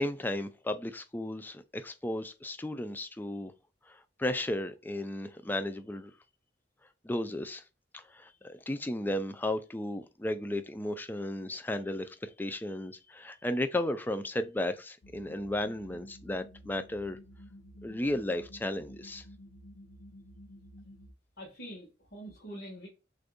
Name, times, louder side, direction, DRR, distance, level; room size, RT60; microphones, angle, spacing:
voice 1, 0.0-3.5 3.9-6.1 7.0-7.6 7.9-17.2 17.8-19.2, left 1 dB, 10° left, 0.4 m, -34 dB
sound 1, 15.0-21.1, equal, 85° left, 0.5 m, -51 dB
voice 2, 21.4-22.9, equal, 60° left, 1.4 m, -45 dB
6.3 x 2.6 x 2.3 m
head